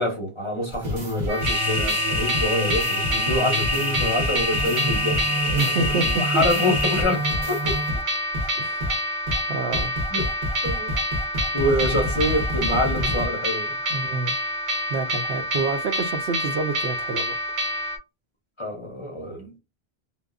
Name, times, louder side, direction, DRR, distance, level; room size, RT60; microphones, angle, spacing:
voice 1, 0.0-7.8 10.1-10.3 10.6-10.9 11.5-13.8 18.6-19.5, left 1 dB, 35° left, 0.6 m, -26 dB
sound 1, 0.7-8.0 8.3-8.5 8.8-8.9 9.3-9.4 9.7-13.3, left 1 dB, 55° right, 1.3 m, -29 dB
sound 2, 1.3-18.0, equal, 40° right, 0.6 m, -28 dB
sound 3, 1.4-7.0, left 2 dB, ahead, 0.9 m, -28 dB
voice 2, 5.5-6.4 8.6-8.9 9.5-9.9 13.9-14.4 14.9-17.4, right 4 dB, 80° right, 0.8 m, -28 dB
2.9 x 2.1 x 2.4 m
omnidirectional pair, 1.1 m